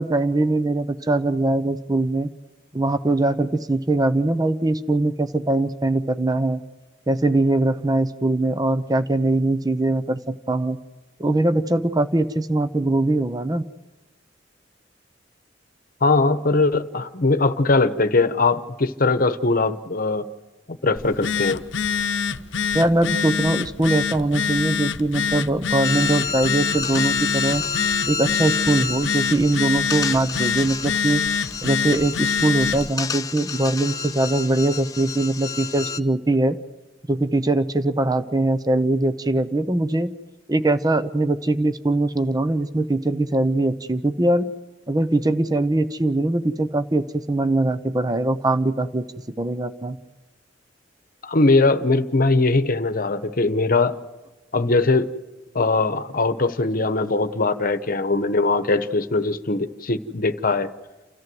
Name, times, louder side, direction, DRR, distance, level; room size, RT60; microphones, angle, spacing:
voice 1, 0.0-2.3 2.7-6.6 7.1-10.8 11.2-13.7 22.7-27.6 28.1-31.2 31.6-36.6 37.1-40.2 40.5-44.5 44.9-49.1 49.4-50.0, right 2 dB, 20° right, 11 dB, 0.8 m, -22 dB
voice 2, 16.0-20.2 20.7-21.6 51.2-53.9 54.5-55.1 55.5-60.7, left 3 dB, 50° left, 11 dB, 1.1 m, -20 dB
Telephone, 21.0-32.9, left 6 dB, 90° left, 0.8 m, -25 dB
sound 1, 25.8-36.0, left 5 dB, 20° left, 0.9 m, -30 dB
29.0 x 14.0 x 7.8 m, 1.2 s
head